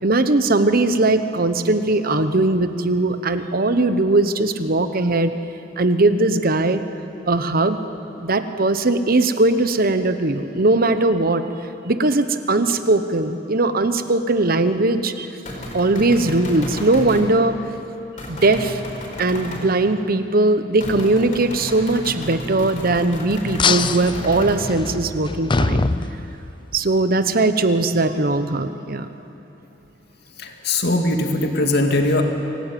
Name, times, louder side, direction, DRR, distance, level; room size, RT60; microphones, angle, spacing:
voice 1, 0.0-5.3 5.8-6.8 7.3-7.8 8.2-11.4 11.8-15.3 15.7-17.6 18.3-18.8 19.2-25.9 26.7-29.1, right 2 dB, 50° right, 10 dB, 1.1 m, -19 dB
sound 1, 15.5-17.3 18.2-19.7 20.8-24.6, equal, 45° left, 4.7 m, -32 dB
sound 2, 23.6-26.8, left 4 dB, 25° left, 0.6 m, -23 dB
voice 2, 30.4-32.2, left 2 dB, 60° left, 3 dB, 2.3 m, -20 dB
25.5 x 17.0 x 9.2 m, 3.0 s
head